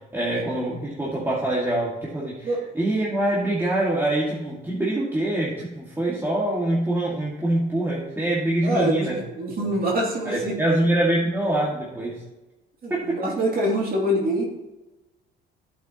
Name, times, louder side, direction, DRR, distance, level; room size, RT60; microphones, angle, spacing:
voice 1, 0.1-9.2 9.6-9.7 10.3-12.2 12.9-13.2, right 1 dB, 10° right, -6 dB, 2.2 m, -24 dB
voice 2, 8.6-9.1 9.4-10.5 12.8-14.4, right 1 dB, 50° right, -3 dB, 3.2 m, -24 dB
12.0 x 8.0 x 3.1 m, 1.0 s
cardioid pair, 90°, 20 cm